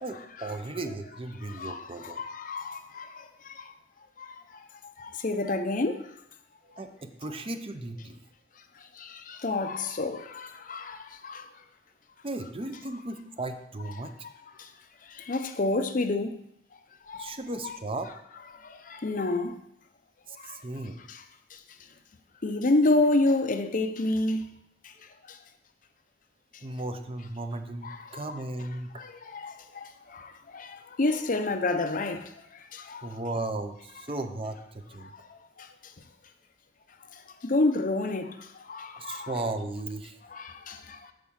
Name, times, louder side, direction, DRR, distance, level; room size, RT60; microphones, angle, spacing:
voice 1, 0.0-2.2 6.6-8.2 12.2-14.1 17.2-18.1 20.3-21.0 26.6-28.9 33.0-34.6 34.9-35.1 39.0-40.2, right 2 dB, 30° right, 0.7 m, -35 dB
voice 2, 1.4-3.7 4.2-4.4 5.0-6.0 9.0-11.5 14.0-14.1 15.1-16.4 17.1-17.4 17.6-17.8 18.6-19.6 20.5-20.6 21.1-21.2 22.4-24.5 27.8-28.4 28.9-32.3 32.7-33.1 35.3-35.7 37.4-39.4 40.3-41.1, left 2 dB, 50° left, 0.7 m, -29 dB
8.6 x 4.8 x 7.2 m
head